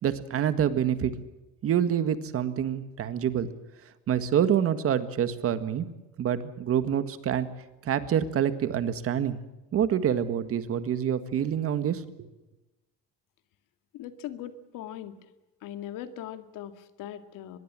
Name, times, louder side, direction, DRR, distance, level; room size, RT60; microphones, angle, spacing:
voice 1, 0.0-1.1 1.6-3.5 4.1-5.9 6.2-7.5 7.8-9.4 9.7-12.3, right 9 dB, 45° right, 12 dB, 1.7 m, -26 dB
voice 2, 13.9-15.2 15.6-17.6, left 11 dB, 75° left, 10 dB, 2.1 m, -40 dB
24.5 x 21.0 x 7.5 m, 1.0 s
cardioid pair, 170°, 33 cm